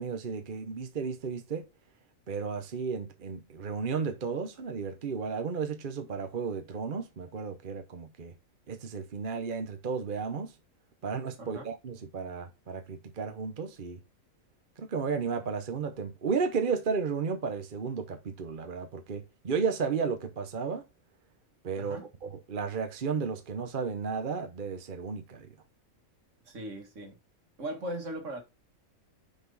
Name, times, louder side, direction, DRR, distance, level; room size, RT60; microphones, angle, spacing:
voice 1, 0.0-1.7 2.3-8.4 8.7-10.5 11.0-14.0 14.8-20.8 21.6-25.5, right 5 dB, 45° right, 0.9 m, -33 dB
voice 2, 21.8-22.1 26.5-27.2 27.6-28.4, right 1 dB, 65° right, 1.9 m, -38 dB
5.9 x 5.1 x 4.0 m
omnidirectional pair, 1.4 m